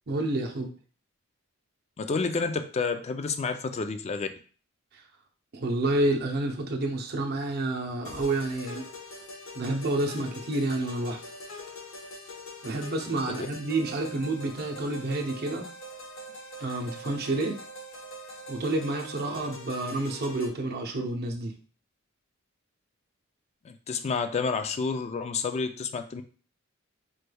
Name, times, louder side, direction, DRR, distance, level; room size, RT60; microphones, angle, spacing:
voice 1, 0.1-0.7 5.5-8.8 9.5-11.2 12.6-15.6 16.6-17.6 18.5-21.5, right 2 dB, 50° right, 2 dB, 0.7 m, -29 dB
voice 2, 2.0-4.3 13.4-13.5 23.6-26.2, left 4 dB, 30° left, 8 dB, 0.3 m, -29 dB
sound 1, 8.0-20.5, equal, 70° left, 1.0 m, -43 dB
4.3 x 3.3 x 2.2 m, 0.39 s
head